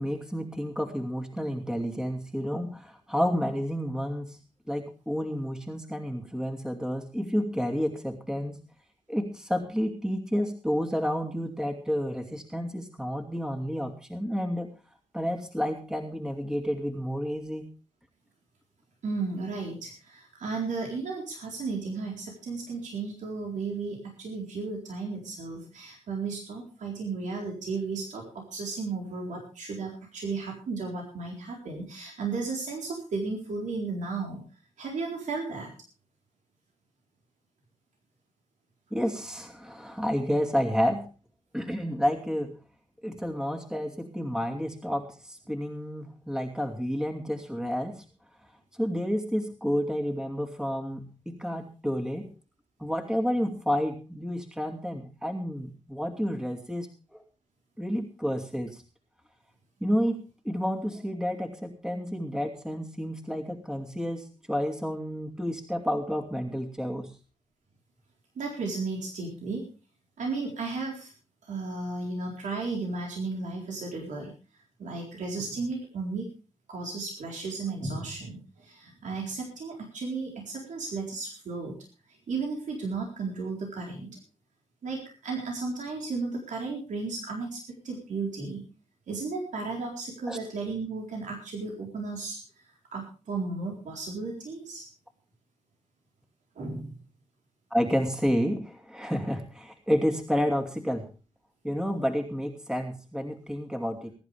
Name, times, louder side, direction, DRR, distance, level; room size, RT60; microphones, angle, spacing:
voice 1, 0.0-4.4 4.7-8.6 9.1-14.7 15.1-17.7 38.9-41.1 41.5-42.6 43.0-48.0 48.8-52.3 52.8-57.2 57.8-58.8 59.8-67.1 90.3-90.4 97.7-101.1 101.6-104.1, equal, 5° right, 3 dB, 2.6 m, -30 dB
voice 2, 19.0-34.4 34.8-35.7 68.4-69.6 70.2-71.1 71.4-74.3 74.8-76.3 76.7-81.7 82.3-84.2 84.8-88.6 89.1-92.4 92.9-94.9 96.6-96.9, right 4 dB, 90° right, 0 dB, 4.2 m, -34 dB
21.5 x 11.0 x 3.5 m, 0.35 s
cardioid pair, 70°, 12 cm